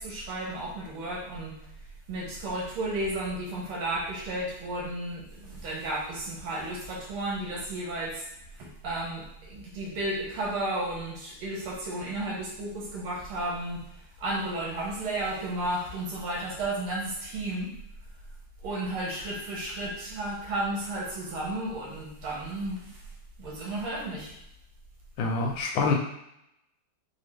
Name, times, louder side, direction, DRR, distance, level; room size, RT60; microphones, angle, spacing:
voice 1, 0.0-1.6 2.1-8.3 8.6-13.8 14.2-17.7 18.6-23.0 23.4-24.3, right 1 dB, 80° right, -4 dB, 1.9 m, -33 dB
voice 2, 25.2-25.9, left 4 dB, 70° left, 2 dB, 1.2 m, -26 dB
4.2 x 2.3 x 3.3 m, 0.78 s
omnidirectional pair, 2.3 m